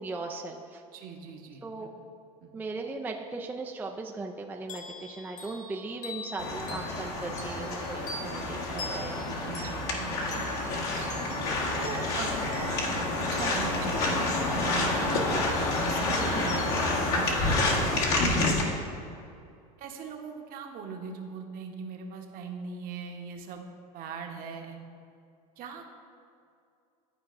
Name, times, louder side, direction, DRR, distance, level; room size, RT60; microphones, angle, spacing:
voice 1, 0.0-0.8 1.6-1.9 2.5-9.5 12.2-12.3 12.9-13.0 16.3-16.5, right 3 dB, 10° right, 2 dB, 0.4 m, -38 dB
voice 2, 0.9-1.9 2.4-2.6 8.2-8.9 9.2-11.1 11.7-12.5 13.2-15.3 15.7-18.6 19.8-23.6 23.9-24.8 25.6-25.9, right 5 dB, 50° right, 3 dB, 1.0 m, -40 dB
sound 1, 4.7-15.0, left 2 dB, 40° left, 1.5 m, -45 dB
sound 2, 6.4-18.6, left 2 dB, 60° left, 1.5 m, -28 dB
12.0 x 4.6 x 2.5 m, 2.5 s
hypercardioid pair, 95°, 19 cm